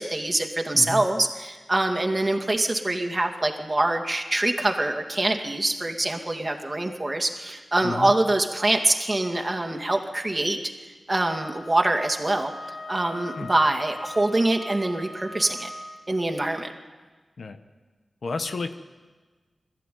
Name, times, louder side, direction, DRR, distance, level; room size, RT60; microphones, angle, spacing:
voice 1, 0.0-10.6 11.1-12.5 12.9-15.7 16.1-16.7, right 2 dB, 25° right, 3 dB, 2.3 m, -24 dB
Wind instrument woodwind instrument, 11.2-15.9, left 2 dB, 50° left, 2.5 m, -41 dB
voice 2, 18.2-18.7, left 3 dB, 75° left, 8 dB, 1.1 m, -31 dB
20.5 x 14.0 x 9.4 m, 1.4 s
wide cardioid pair, 75°, 0 cm